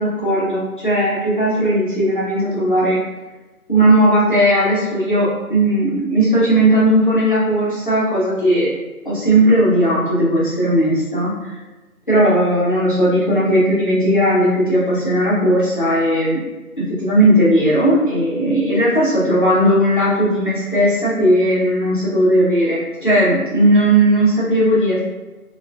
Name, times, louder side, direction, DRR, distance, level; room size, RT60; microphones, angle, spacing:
voice 1, 0.0-3.0 3.7-8.7 9.0-11.6 12.1-16.4 17.0-25.0, right 1 dB, 35° left, -8 dB, 0.7 m, -16 dB
3.5 x 2.4 x 2.2 m, 1.2 s
figure-of-eight pair, 165°, 44 cm